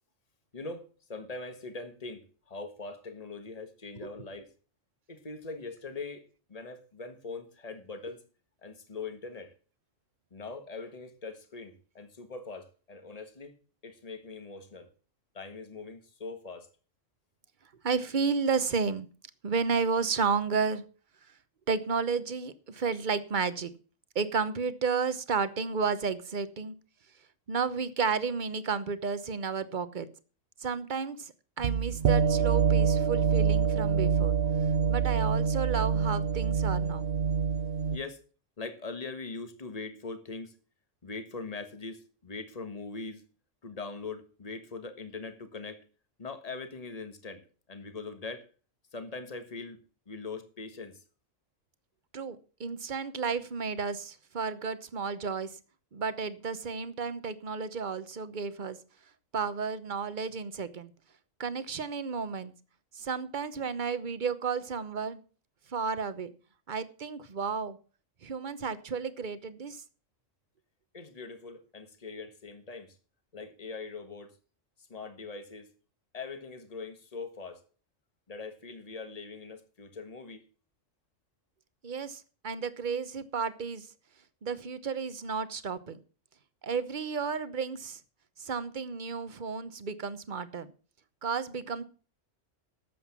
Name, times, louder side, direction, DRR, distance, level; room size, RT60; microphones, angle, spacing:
voice 1, 0.5-4.5 5.1-8.2 8.6-9.5 10.3-13.6 13.8-14.9 15.3-16.7 37.9-38.2 38.6-40.6 41.0-43.2 43.6-45.8 46.2-47.4 47.7-48.4 48.9-49.8 50.1-51.0 70.9-73.0 73.3-74.3 74.9-75.7 76.1-77.6 78.3-80.5, left 4 dB, 30° left, 1.6 m, -41 dB
voice 2, 17.8-19.1 19.4-20.8 21.7-23.7 24.1-26.7 27.5-30.1 30.6-34.4 34.9-37.0 52.1-55.5 55.9-58.8 59.3-60.9 61.4-62.5 62.9-65.2 65.7-66.3 66.7-67.8 68.2-69.8 81.8-83.9 84.4-86.0 86.6-88.0 88.4-90.7 91.2-91.8, right 5 dB, 40° right, 1.0 m, -32 dB
sound 1, 31.6-38.0, right 6 dB, 60° right, 0.9 m, -26 dB
13.0 x 7.9 x 5.9 m
omnidirectional pair, 1.3 m